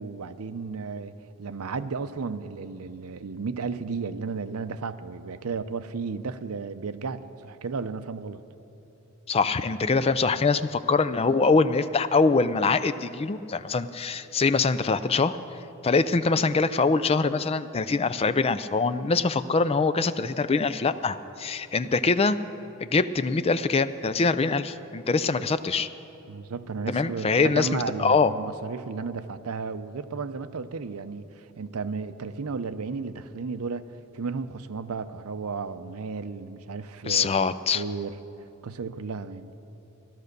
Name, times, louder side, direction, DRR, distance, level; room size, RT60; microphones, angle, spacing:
voice 1, 0.0-8.4 26.3-37.4 37.7-39.5, right 4 dB, 85° right, 0.6 m, -34 dB
voice 2, 9.3-15.4 15.8-22.4 22.8-25.9 26.9-28.3 37.1-37.8, left 4 dB, 25° left, 0.4 m, -23 dB
16.0 x 12.0 x 6.6 m
head